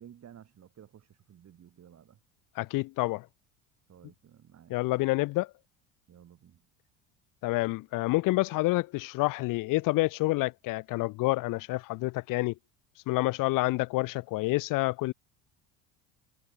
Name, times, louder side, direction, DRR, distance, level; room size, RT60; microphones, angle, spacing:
voice 1, 0.0-2.2 3.9-4.8 6.1-6.7, right 9 dB, 40° right, 3.7 m, -54 dB
voice 2, 2.6-3.3 4.7-5.5 7.4-12.5 13.1-15.1, left 21 dB, 55° left, 0.8 m, -28 dB
hypercardioid pair, 85°, 39 cm